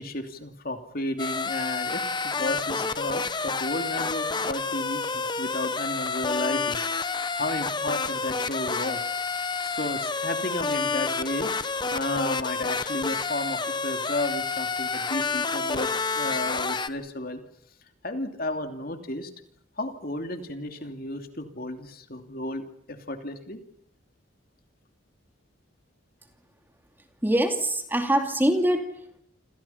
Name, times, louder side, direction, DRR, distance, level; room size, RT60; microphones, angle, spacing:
voice 1, 0.0-9.0 9.6-11.5 11.9-17.4 18.0-19.3 19.8-23.6, left 1 dB, 45° left, 6 dB, 2.8 m, -33 dB
sound 1, 1.2-16.9, left 4 dB, 20° left, 1.1 m, -29 dB
voice 2, 27.2-29.2, right 1 dB, 10° right, 5 dB, 2.6 m, -24 dB
28.5 x 27.5 x 5.8 m, 0.66 s
head